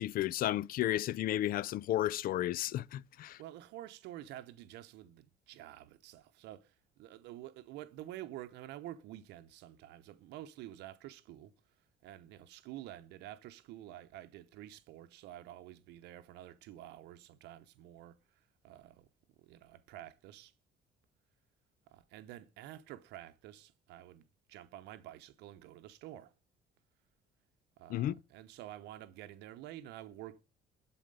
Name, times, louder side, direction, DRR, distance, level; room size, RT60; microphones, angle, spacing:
voice 1, 0.0-3.4 27.9-28.1, left 13 dB, 60° left, 0.4 m, -33 dB
voice 2, 3.4-11.5 12.0-19.1 19.4-20.5 21.9-26.3 27.8-30.4, right 13 dB, 85° right, 0.8 m, -49 dB
11.0 x 4.3 x 5.4 m
cardioid pair, 110°, 17 cm